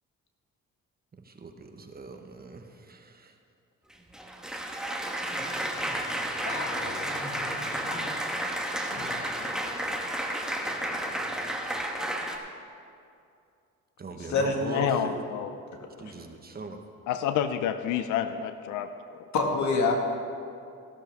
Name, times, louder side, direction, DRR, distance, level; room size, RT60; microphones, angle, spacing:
voice 1, 1.2-3.4 14.0-15.2 16.0-16.8, right 3 dB, 30° right, 5 dB, 1.1 m, -41 dB
Applause, 3.9-12.4, right 1 dB, ahead, 1.2 m, -32 dB
voice 2, 6.5-8.2 8.8-9.5 14.2-14.9 19.3-19.9, left 4 dB, 70° left, 2 dB, 1.8 m, -30 dB
voice 3, 14.7-15.6 17.1-19.3, left 9 dB, 90° left, 10 dB, 0.6 m, -29 dB
15.0 x 12.0 x 3.5 m, 2.4 s
cardioid pair, 90°, 30 cm